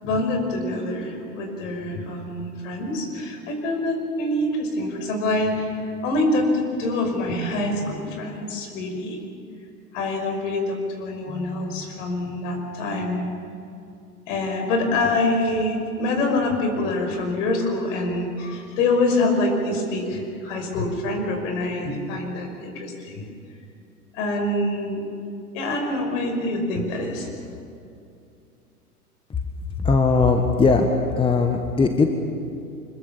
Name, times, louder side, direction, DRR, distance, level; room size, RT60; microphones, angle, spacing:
voice 1, 0.0-5.7 6.0-9.2 9.9-13.3 14.3-23.2 24.1-25.0 25.5-27.3, left 2 dB, 55° left, 4 dB, 5.7 m, -25 dB
voice 2, 29.8-32.1, left 4 dB, 10° left, 5 dB, 1.3 m, -19 dB
25.0 x 21.5 x 7.3 m, 2.5 s
figure-of-eight pair, 100°, 46 cm